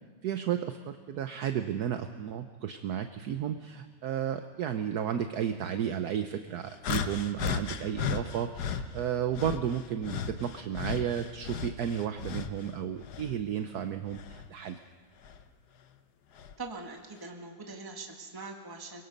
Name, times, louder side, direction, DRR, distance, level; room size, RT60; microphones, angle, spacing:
voice 1, 0.2-14.8, right 9 dB, 65° right, 8 dB, 1.1 m, -33 dB
sound 1, 6.8-8.9 9.3-12.6 13.0-14.5 15.2-15.4 16.4-16.5, left 7 dB, 60° left, 1.3 m, -35 dB
voice 2, 16.6-19.0, right 3 dB, 10° right, 2 dB, 1.6 m, -42 dB
24.5 x 22.0 x 5.3 m, 1.5 s
omnidirectional pair, 2.3 m